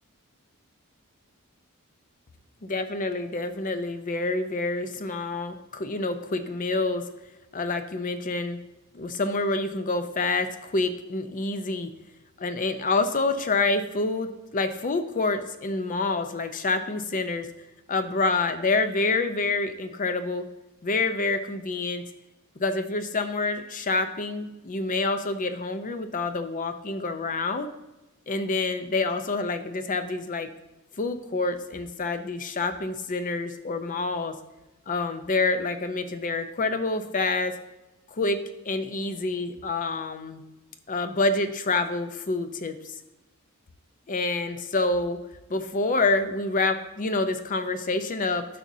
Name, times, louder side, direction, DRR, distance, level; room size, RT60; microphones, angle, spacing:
voice 1, 2.6-7.0 7.5-8.6 8.9-11.9 12.4-17.5 17.9-20.5 20.8-22.0 22.6-27.7 28.3-30.5 31.0-34.4 34.9-37.5 38.1-40.4 40.9-42.9 44.1-45.2 45.5-48.4, left 3 dB, 40° left, 9 dB, 0.6 m, -27 dB
11.0 x 6.1 x 2.7 m, 1.0 s
head